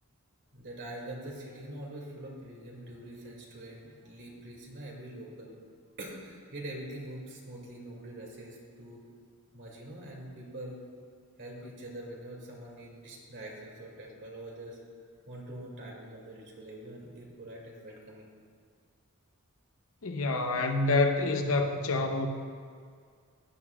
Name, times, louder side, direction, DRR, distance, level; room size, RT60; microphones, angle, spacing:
voice 1, 0.5-5.6 6.0-9.0 9.5-10.8 11.4-14.8 15.3-18.3, right 1 dB, 55° right, -2 dB, 2.5 m, -44 dB
voice 2, 20.0-22.3, left 3 dB, 65° left, 5 dB, 0.8 m, -27 dB
16.5 x 10.5 x 2.4 m, 2.1 s
head